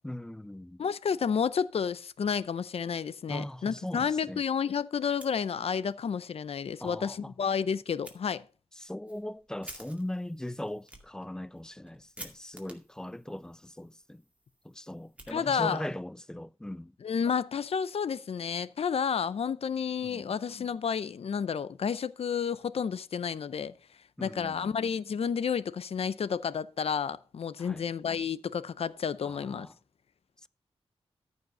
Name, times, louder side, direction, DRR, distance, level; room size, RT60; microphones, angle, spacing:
voice 1, 0.0-0.8 3.3-4.4 6.8-7.3 8.8-14.2 14.6-16.9 20.0-20.3 24.2-24.8 27.6-27.9 29.2-29.7 30.4-30.5, left 1 dB, 5° left, 0.4 m, -39 dB
voice 2, 0.8-8.4 15.3-15.8 17.0-23.7 24.2-29.7, left 7 dB, 70° left, 0.6 m, -31 dB
Fire, 5.1-6.0 6.3-6.4 6.8-6.9 8.0-8.2 8.7-15.9, right 1 dB, 10° right, 2.2 m, -52 dB
14.0 x 5.4 x 5.3 m
wide cardioid pair, 145°, 11 cm